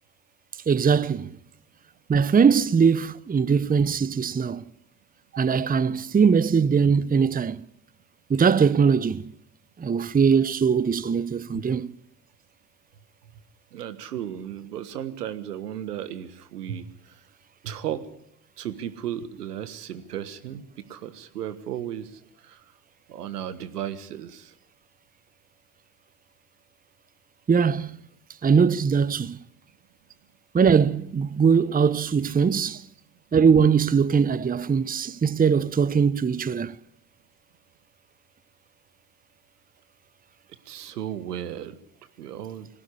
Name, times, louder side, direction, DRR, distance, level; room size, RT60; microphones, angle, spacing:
voice 1, 0.7-1.3 2.1-4.6 5.4-7.6 8.3-9.3 9.8-11.9 27.5-27.9 28.4-29.4 30.5-32.8 33.3-36.7, right 6 dB, 20° right, 0.8 m, -21 dB
voice 2, 13.7-17.2 17.6-18.0 18.6-20.6 20.9-22.7 23.1-24.5 40.6-41.8 42.2-42.7, right 10 dB, 85° right, 1.5 m, -35 dB
20.5 x 17.5 x 10.0 m
hypercardioid pair, 55°, 46 cm